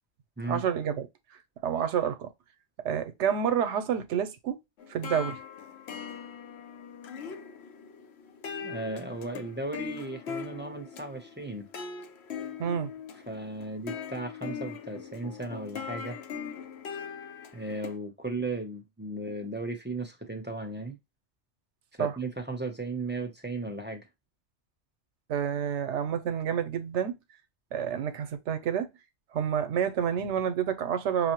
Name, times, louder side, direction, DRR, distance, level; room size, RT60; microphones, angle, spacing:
voice 1, 0.5-2.3 2.8-4.6 4.9-5.4 12.6-12.9 22.0-22.1 25.3-27.2 27.7-28.9 29.3-31.3, right 8 dB, 90° right, 0.9 m, -29 dB
sound 1, 4.8-18.0, left 6 dB, 70° left, 0.9 m, -40 dB
voice 2, 8.6-11.7 13.3-16.2 17.5-21.0 22.0-24.0, right 2 dB, 10° right, 0.6 m, -36 dB
5.7 x 2.1 x 2.9 m
omnidirectional pair, 1.2 m